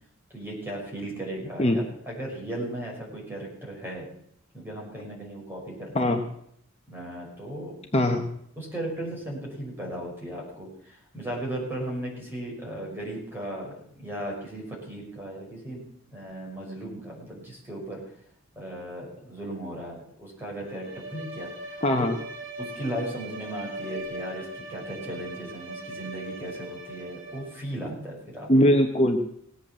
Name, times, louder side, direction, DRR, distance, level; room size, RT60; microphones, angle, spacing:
voice 1, 0.3-4.1 4.5-6.1 6.9-7.7 8.6-15.8 16.1-18.0 18.6-22.1 22.6-28.5, right 1 dB, 10° right, -3 dB, 6.0 m, -36 dB
voice 2, 7.9-8.3 21.8-22.2 28.5-29.2, left 1 dB, 30° left, 4 dB, 1.1 m, -21 dB
Bowed string instrument, 20.6-27.7, right 1 dB, 75° right, 5.4 m, -40 dB
18.5 x 8.4 x 7.6 m, 0.68 s
head